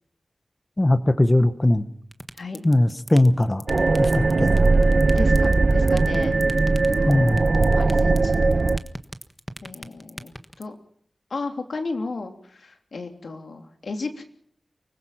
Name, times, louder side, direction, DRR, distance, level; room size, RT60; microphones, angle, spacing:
voice 1, 0.8-1.9 2.6-3.6 4.0-4.7 7.1-7.5, left 1 dB, 20° left, 11 dB, 1.2 m, -20 dB
sound 1, 2.1-10.6, equal, ahead, 1.4 m, -37 dB
sound 2, 3.7-8.8, right 3 dB, 60° right, 1.0 m, -19 dB
voice 2, 5.1-6.4 6.7-7.1 7.7-8.8 9.6-10.8 11.3-14.2, left 3 dB, 85° left, 5 dB, 3.1 m, -34 dB
24.5 x 20.5 x 5.9 m, 0.64 s
wide cardioid pair, 100°, 0 cm